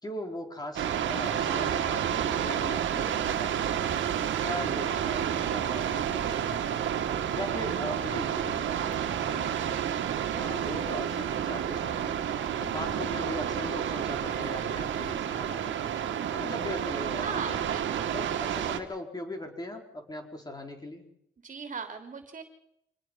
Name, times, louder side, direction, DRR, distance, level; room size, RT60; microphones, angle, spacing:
voice 1, 0.0-4.0 4.4-6.9 7.3-9.5 10.3-12.2 12.6-16.0 16.3-17.7 18.1-21.1, left 1 dB, 20° left, 3 dB, 4.7 m, -39 dB
sound 1, 0.8-18.8, right 9 dB, 70° right, 2.2 m, -30 dB
voice 2, 14.3-15.2 16.0-16.3 17.2-18.1 21.4-22.4, right 5 dB, 40° right, 5 dB, 3.3 m, -40 dB
26.0 x 19.5 x 5.6 m, 0.76 s
cardioid pair, 90°, 20 cm